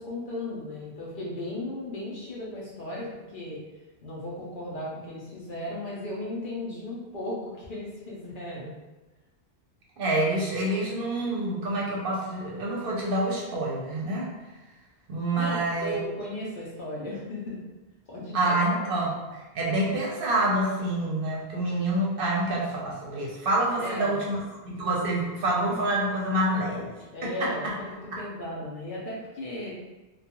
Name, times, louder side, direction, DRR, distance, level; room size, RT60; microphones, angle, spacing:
voice 1, 0.0-3.6 4.0-8.7 15.4-17.6 18.1-18.9 23.8-24.2 27.1-29.7, left 1 dB, 55° left, -5 dB, 0.7 m, -36 dB
voice 2, 10.0-14.3 15.1-15.9 18.3-19.1 19.5-24.4 24.6-26.9 27.2-27.5, right 1 dB, 60° right, -4 dB, 0.7 m, -27 dB
2.3 x 2.2 x 2.8 m, 1.1 s
omnidirectional pair, 1.1 m